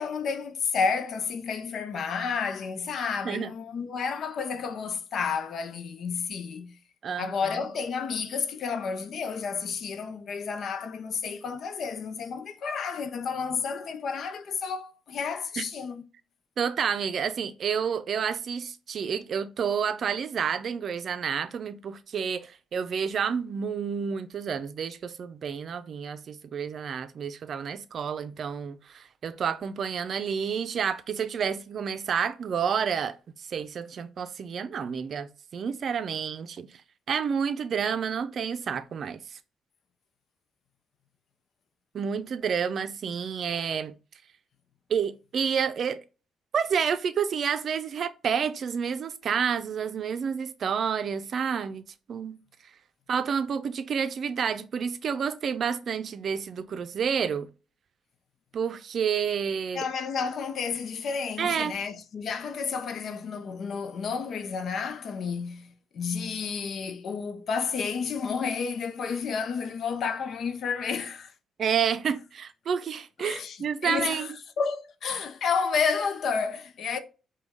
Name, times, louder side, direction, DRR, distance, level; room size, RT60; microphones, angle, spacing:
voice 1, 0.0-6.8 7.2-16.0 59.7-71.3 73.2-77.0, left 5 dB, 60° left, 0.6 m, -31 dB
voice 2, 7.0-7.3 15.6-15.7 16.6-33.2 33.5-36.7 37.1-39.4 41.9-43.9 44.9-46.0 46.5-51.8 52.1-52.4 53.1-57.5 58.5-59.8 61.4-61.7 71.6-74.3, right 7 dB, 55° right, 0.5 m, -29 dB
5.0 x 2.3 x 3.5 m
cardioid pair, 90°, 0 cm